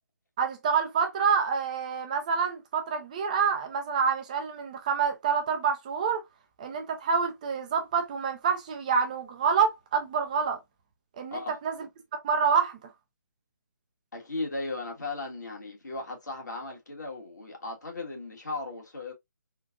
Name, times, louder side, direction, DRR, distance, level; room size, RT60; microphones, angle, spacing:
voice 1, 0.4-6.2 6.6-10.6 11.2-11.9 12.2-12.8, right 6 dB, 25° right, 0.4 m, -27 dB
voice 2, 14.1-19.1, left 2 dB, 65° left, 1.6 m, -36 dB
3.7 x 2.4 x 2.4 m
figure-of-eight pair, 145°, 10 cm